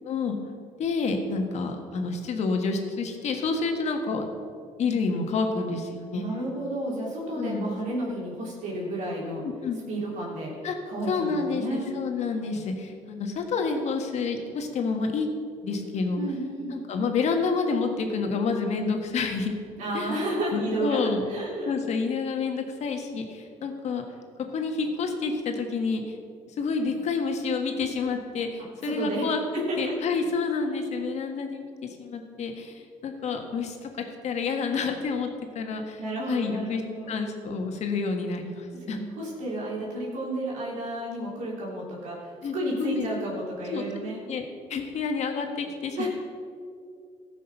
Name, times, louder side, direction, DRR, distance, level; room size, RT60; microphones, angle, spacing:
voice 1, 0.1-0.4 0.8-4.3 4.8-6.2 7.3-7.8 9.4-9.8 10.6-10.7 11.1-15.3 15.6-16.2 16.9-19.5 19.9-20.1 20.5-21.2 21.7-24.0 24.4-26.2 26.6-29.4 29.8-33.9 34.2-35.3 35.5-36.0 36.3-36.8 37.1-39.0 42.4-42.5 42.8-43.1 43.7-43.8 44.3-46.1, left 4 dB, 55° left, 4 dB, 1.6 m, -29 dB
voice 2, 6.1-9.4 9.9-11.9 16.1-16.8 19.8-21.7 28.8-30.0 36.0-37.1 38.9-44.3 45.9-46.1, right 1 dB, 70° right, -5 dB, 3.2 m, -32 dB
14.0 x 6.2 x 5.9 m, 2.3 s
cardioid pair, 95°, 13 cm